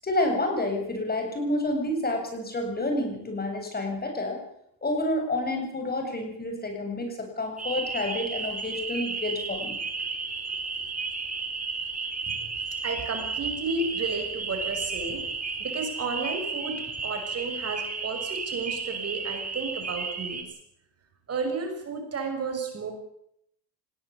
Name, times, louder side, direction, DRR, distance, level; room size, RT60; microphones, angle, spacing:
voice 1, 0.0-4.4 4.8-9.8, left 1 dB, 25° left, 4 dB, 7.9 m, -29 dB
sound 1, 7.6-20.4, right 4 dB, 20° right, 4.4 m, -33 dB
voice 2, 12.8-15.2 15.6-16.8 17.0-20.5 21.3-22.9, right 4 dB, 40° right, 4 dB, 6.3 m, -32 dB
20.0 x 16.5 x 8.7 m, 0.73 s
cardioid pair, 105°, 39 cm